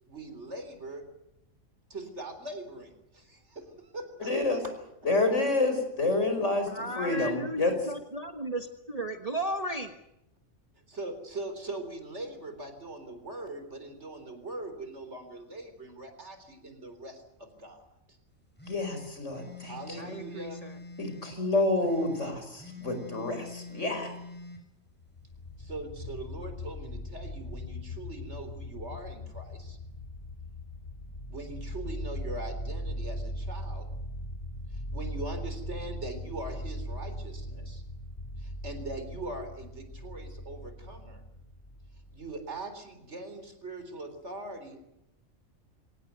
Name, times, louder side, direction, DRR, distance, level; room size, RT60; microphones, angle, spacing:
voice 1, 0.1-1.0 1.9-4.3 4.6-4.7 10.9-17.9 19.6-20.6 25.6-29.8 31.3-33.9 34.7-37.8 38.4-41.2 42.1-44.8, right 2 dB, 55° right, 8 dB, 4.2 m, -41 dB
voice 2, 4.2-4.6 5.0-7.7 18.6-20.0 21.0-21.1 21.4-24.1, left 2 dB, 65° left, 7 dB, 5.5 m, -28 dB
voice 3, 6.7-10.0 20.0-20.8, right 1 dB, 30° right, 6 dB, 1.4 m, -35 dB
sound 1, 18.6-21.4 21.8-24.6, left 4 dB, 5° left, 5.5 m, -45 dB
sound 2, 25.0-42.4, equal, 35° left, 3.0 m, -39 dB
24.0 x 18.5 x 9.4 m, 0.87 s
omnidirectional pair, 1.4 m